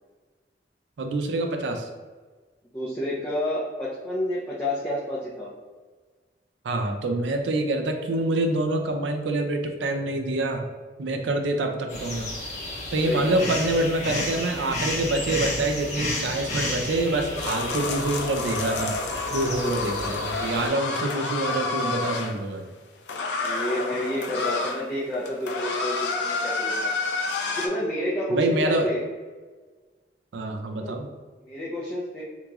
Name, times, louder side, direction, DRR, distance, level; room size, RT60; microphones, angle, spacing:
voice 1, 1.0-1.9 6.6-10.7 11.0-12.4 12.9-19.0 19.3-22.7 28.3-28.9 30.3-31.1, right 2 dB, 85° right, 4 dB, 0.4 m, -26 dB
voice 2, 2.7-5.5 13.0-13.8 23.3-27.0 27.5-29.0 30.7-31.0 31.4-32.2, left 1 dB, 10° left, -9 dB, 0.5 m, -30 dB
sound 1, 11.9-20.7, left 1 dB, 40° left, 1.1 m, -32 dB
sound 2, 17.4-22.3 23.1-24.8 25.1-27.7, left 3 dB, 75° left, 0.4 m, -29 dB
3.6 x 2.9 x 2.3 m, 1.4 s
head